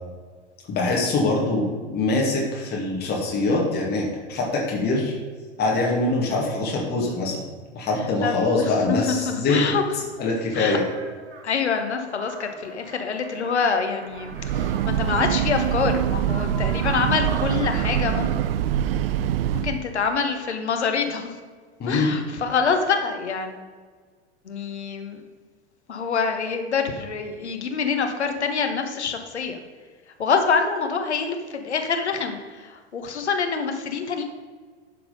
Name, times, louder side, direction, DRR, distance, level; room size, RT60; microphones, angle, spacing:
voice 1, 0.7-5.1 5.6-7.5 7.7-9.6 10.2-10.8 21.8-22.1, left 2 dB, 30° left, -3 dB, 2.3 m, -23 dB
voice 2, 8.2-9.8 10.5-10.8 11.4-18.4 19.5-21.4 21.9-23.6 24.4-25.2 25.9-29.6 30.2-34.2, left 5 dB, 75° left, 5 dB, 1.2 m, -26 dB
sound 1, 10.7-14.9 15.4-17.2, right 3 dB, 30° right, 2.7 m, -43 dB
Breathing / Train, 14.2-19.9, right 10 dB, 60° right, 0.4 m, -24 dB
11.5 x 4.7 x 5.2 m, 1.5 s
figure-of-eight pair, 85°, 34 cm